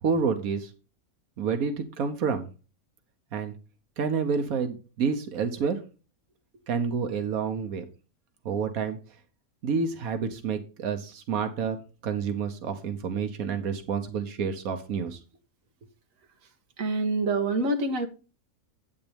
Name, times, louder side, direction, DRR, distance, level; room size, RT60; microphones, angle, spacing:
voice 1, 0.0-0.7 1.4-2.5 3.3-3.5 4.0-5.8 6.7-7.8 8.4-9.0 9.6-11.8 12.0-15.2, right 6 dB, 90° right, 1.5 m, -29 dB
voice 2, 16.8-18.1, right 2 dB, 70° right, 1.6 m, -26 dB
9.3 x 8.9 x 3.4 m
omnidirectional pair, 1.5 m